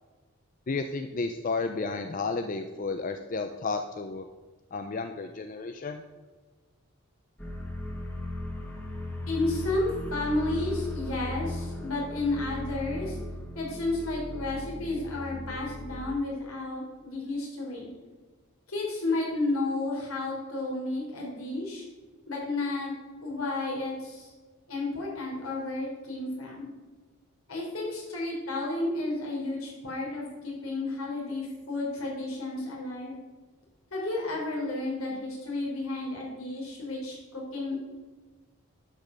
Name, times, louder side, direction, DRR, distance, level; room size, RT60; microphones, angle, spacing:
voice 1, 0.7-4.2 4.7-6.0, left 3 dB, 40° left, 7 dB, 0.4 m, -32 dB
sound 1, 7.4-16.2, left 1 dB, 10° left, 1.1 m, -37 dB
voice 2, 9.3-13.2 13.6-17.9 18.7-21.8 22.3-22.9 23.2-24.3 24.7-26.7 27.5-33.2 33.9-37.8, left 2 dB, 75° left, -2 dB, 3.6 m, -32 dB
11.0 x 5.3 x 6.2 m, 1.3 s
head